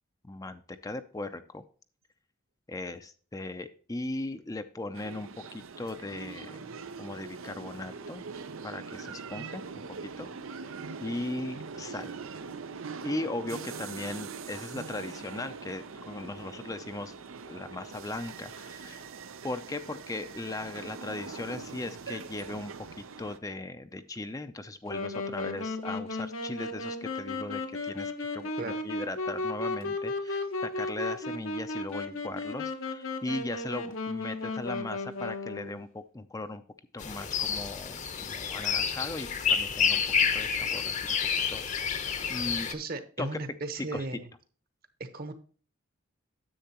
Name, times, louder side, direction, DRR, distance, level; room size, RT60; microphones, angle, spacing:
voice 1, 0.2-1.6 2.7-6.6 7.0-8.2 8.6-9.8 10.2-10.3 11.0-12.2 13.0-17.1 17.4-19.1 19.4-36.6 36.9-40.0 40.3-40.9 41.5-42.7 43.2-43.4 43.9-44.0, left 2 dB, 15° left, 9 dB, 0.5 m, -38 dB
sound 1, 4.9-23.4, right 5 dB, 90° right, 0.7 m, -42 dB
Wind instrument woodwind instrument, 24.9-35.8, left 2 dB, 85° left, 1.3 m, -35 dB
sound 2, 37.0-42.7, left 6 dB, 35° left, 0.8 m, -29 dB
voice 2, 42.7-44.3 45.0-45.3, right 2 dB, 50° right, 10 dB, 1.1 m, -36 dB
10.0 x 7.7 x 2.9 m, 0.41 s
head